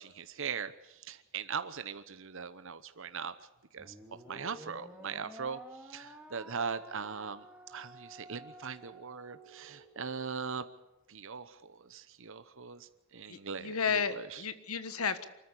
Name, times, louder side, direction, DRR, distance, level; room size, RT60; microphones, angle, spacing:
voice 1, 0.0-3.5 3.7-3.9 4.3-10.6 11.1-14.4, right 6 dB, 65° right, 11 dB, 1.0 m, -40 dB
sound 1, 3.8-10.3, right 1 dB, 5° right, 2.2 m, -52 dB
voice 2, 13.3-15.3, left 6 dB, 90° left, 12 dB, 1.5 m, -33 dB
25.0 x 14.0 x 8.5 m, 0.95 s
head